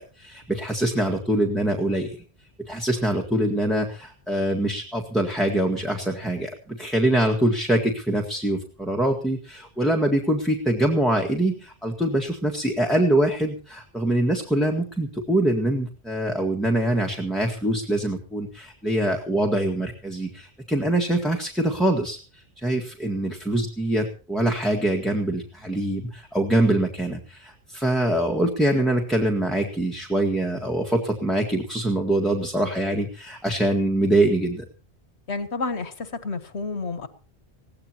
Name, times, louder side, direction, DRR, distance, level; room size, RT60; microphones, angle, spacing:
voice 1, 0.0-2.2 2.6-34.6, right 1 dB, ahead, 1 dB, 1.7 m, -24 dB
voice 2, 35.3-37.1, left 3 dB, 85° left, 10 dB, 1.8 m, -30 dB
21.0 x 17.0 x 3.0 m, 0.37 s
omnidirectional pair, 1.1 m